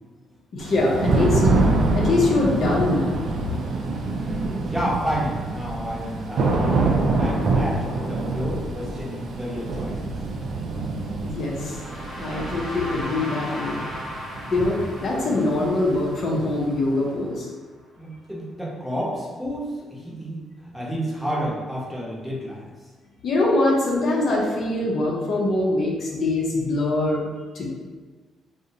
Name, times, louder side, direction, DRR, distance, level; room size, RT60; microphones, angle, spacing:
voice 1, 0.5-1.4 1.9-3.1 11.2-11.8 12.2-13.9 14.5-17.5 23.2-27.2 27.5-27.7, left 2 dB, 60° left, -3 dB, 0.5 m, -23 dB
Thunder / Rain, 0.6-16.4, right 3 dB, 60° right, 0.3 m, -25 dB
voice 2, 4.1-6.9 7.1-10.0 15.3-15.4 18.0-20.4 20.7-22.6, equal, 5° right, -6 dB, 0.7 m, -30 dB
sound 1, 11.3-17.3, equal, 45° left, 0.9 m, -37 dB
2.4 x 2.0 x 2.7 m, 1.4 s
cardioid pair, 90°, 0 cm